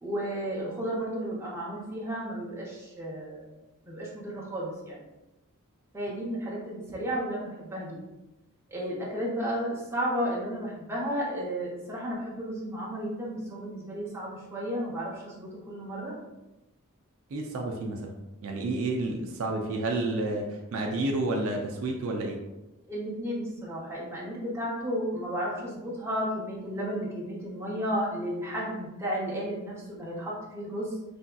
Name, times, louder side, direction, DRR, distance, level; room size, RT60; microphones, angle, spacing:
voice 1, 0.0-3.5 3.8-5.0 5.9-8.0 8.7-16.1 22.9-30.9, equal, 10° right, -5 dB, 0.6 m, -33 dB
voice 2, 17.3-18.1 18.4-22.4, right 2 dB, 60° right, 1 dB, 0.4 m, -30 dB
3.3 x 2.6 x 2.2 m, 1.0 s
head